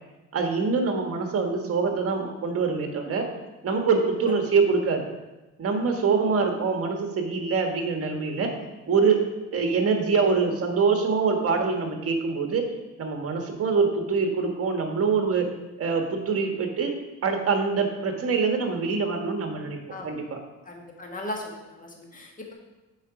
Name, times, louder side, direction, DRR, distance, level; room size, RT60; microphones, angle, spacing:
voice 1, 0.3-3.2 3.6-5.0 5.6-8.5 8.9-9.2 9.5-12.6 13.0-15.4 15.8-16.9 17.2-19.8 20.0-20.2, right 5 dB, 50° right, 3 dB, 1.4 m, -24 dB
voice 2, 20.6-22.5, left 1 dB, 25° left, 0 dB, 1.7 m, -37 dB
7.1 x 4.9 x 4.8 m, 1.1 s
cardioid pair, 90°, 30 cm